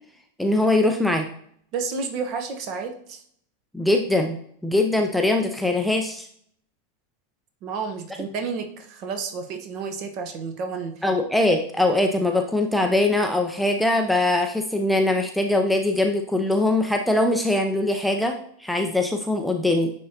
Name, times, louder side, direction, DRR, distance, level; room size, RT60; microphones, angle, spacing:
voice 1, 0.4-1.3 3.7-6.3 11.0-19.9, left 2 dB, ahead, 3 dB, 0.5 m, -22 dB
voice 2, 1.7-3.2 7.6-11.0, right 5 dB, 40° right, 6 dB, 0.9 m, -31 dB
9.5 x 3.7 x 2.8 m, 0.64 s
figure-of-eight pair, 90°, 0 cm